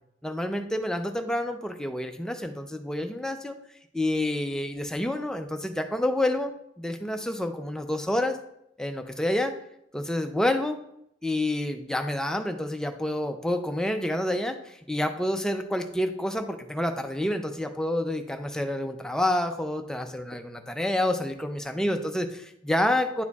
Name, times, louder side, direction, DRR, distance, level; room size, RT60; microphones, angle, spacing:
voice 1, 0.2-3.6 3.9-8.4 8.8-9.5 9.9-10.8 11.2-23.2, left 1 dB, 5° left, 5 dB, 0.4 m, -28 dB
9.6 x 4.2 x 2.4 m, 0.77 s
head